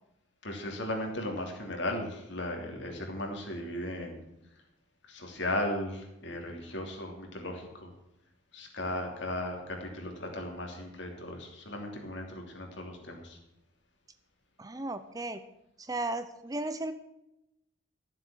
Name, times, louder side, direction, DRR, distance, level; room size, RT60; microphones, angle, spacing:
voice 1, 0.4-4.2 5.1-7.9 8.5-13.4, left 1 dB, 60° left, 2 dB, 3.1 m, -36 dB
voice 2, 14.6-15.4 15.8-16.9, right 2 dB, 20° right, 11 dB, 0.6 m, -35 dB
13.5 x 7.6 x 7.2 m, 0.88 s
head